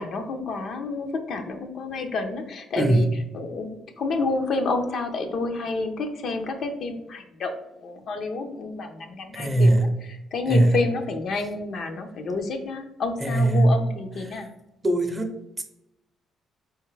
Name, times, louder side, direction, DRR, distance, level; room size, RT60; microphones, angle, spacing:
voice 1, 0.0-3.1 3.3-9.9 10.3-14.5, left 3 dB, 55° left, 5 dB, 0.6 m, -29 dB
voice 2, 2.8-3.1 9.3-9.9 10.5-10.8 13.2-13.8 14.2-14.4 14.8-15.6, right 1 dB, 20° right, 5 dB, 0.6 m, -20 dB
4.3 x 3.5 x 3.2 m, 0.89 s
cardioid pair, 115°, 0 cm